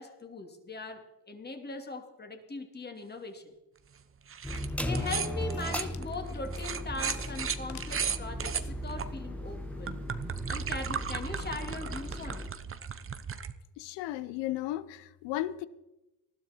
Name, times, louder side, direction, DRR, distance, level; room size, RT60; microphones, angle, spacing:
voice 1, 0.0-3.5 4.8-10.0 10.5-12.5, left 2 dB, 25° left, 2.8 m, -40 dB
sound 1, 4.3-4.7 4.9-9.0 9.6-13.5, right 7 dB, 30° right, 1.0 m, -36 dB
sound 2, 4.4-12.5, left 1 dB, 5° left, 1.4 m, -37 dB
sound 3, 4.5-9.6, left 8 dB, 45° left, 1.2 m, -52 dB
voice 2, 13.8-15.7, left 15 dB, 85° left, 0.9 m, -35 dB
20.0 x 12.5 x 4.5 m
supercardioid pair, 85°, 42 cm